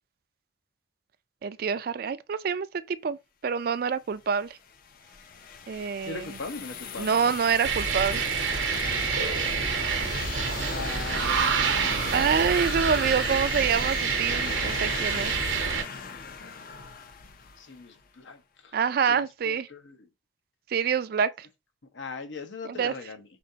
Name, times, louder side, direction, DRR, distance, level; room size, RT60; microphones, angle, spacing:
voice 1, 1.4-3.2 3.4-4.5 5.7-6.4 7.0-8.3 12.1-15.3 18.7-19.7 20.7-21.5 22.6-22.9, right 6 dB, 50° right, 0.3 m, -26 dB
sound 1, 4.2-17.9, left 6 dB, 50° left, 0.5 m, -37 dB
voice 2, 6.1-7.2 10.7-12.3 17.6-18.7 19.0-20.0 21.9-23.2, left 3 dB, 80° left, 0.9 m, -40 dB
sound 2, 7.6-15.8, right 6 dB, 80° right, 0.8 m, -27 dB
5.1 x 3.6 x 2.7 m
head